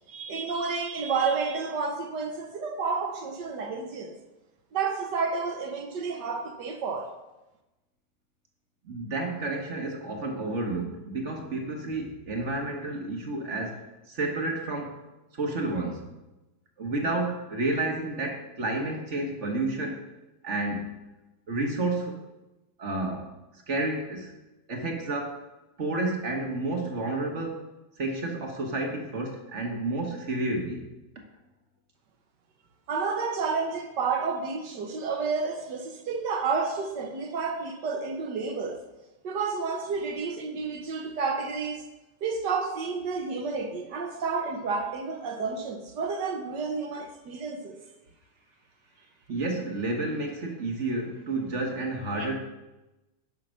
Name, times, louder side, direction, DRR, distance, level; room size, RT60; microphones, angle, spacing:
voice 1, 0.1-4.1 4.7-7.2 32.9-38.8 39.2-41.8 42.2-47.8, right 4 dB, 60° right, 1.5 m, -30 dB
voice 2, 8.8-15.0 15.3-16.1 16.8-20.0 20.4-21.1 21.5-22.2 22.8-23.3 23.7-24.3 24.7-25.4 25.8-27.6 28.0-30.9 49.3-52.4, right 2 dB, 40° right, 1.5 m, -30 dB
9.9 x 5.7 x 6.3 m
omnidirectional pair, 2.3 m